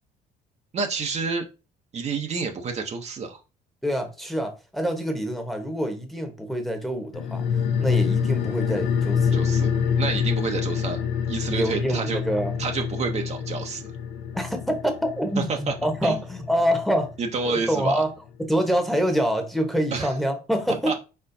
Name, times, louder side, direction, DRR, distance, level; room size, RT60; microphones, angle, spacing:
voice 1, 0.7-1.5 1.9-3.4 9.3-9.7 10.0-11.0 11.3-12.2 12.6-13.8 15.4-15.7 16.0-16.2 17.2-18.0 19.9-20.1 20.9-21.0, right 4 dB, 40° right, 0.7 m, -28 dB
voice 2, 3.8-7.4 7.8-9.4 11.5-12.5 14.3-17.1 17.5-18.1 18.4-20.9, equal, ahead, 1.0 m, -26 dB
sound 1, 7.1-18.0 18.3-18.4, left 7 dB, 80° left, 0.8 m, -27 dB
4.4 x 4.3 x 2.7 m
cardioid pair, 110°, 17 cm